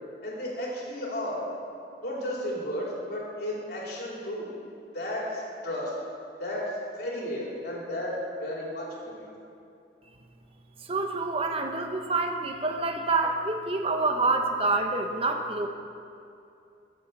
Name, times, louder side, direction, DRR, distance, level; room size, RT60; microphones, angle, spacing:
voice 1, 0.2-1.4 2.0-4.5 4.9-5.9 6.4-9.1, left 1 dB, 55° left, -4 dB, 3.4 m, -33 dB
voice 2, 10.9-15.7, right 3 dB, 30° right, 4 dB, 1.0 m, -27 dB
13.0 x 7.5 x 7.1 m, 2.6 s
head